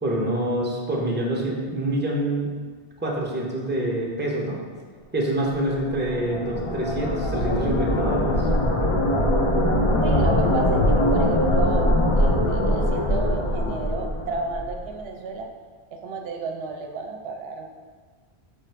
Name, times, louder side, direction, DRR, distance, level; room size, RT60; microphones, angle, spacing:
voice 1, 0.0-2.5 3.0-4.6 5.1-8.4, right 1 dB, 15° right, -3 dB, 0.5 m, -26 dB
sound 1, 5.5-14.8, left 1 dB, 45° left, 0.4 m, -22 dB
voice 2, 10.0-11.9 12.2-15.5 15.9-17.7, right 4 dB, 70° right, 2 dB, 0.8 m, -32 dB
4.8 x 2.4 x 4.4 m, 1.5 s
omnidirectional pair, 1.1 m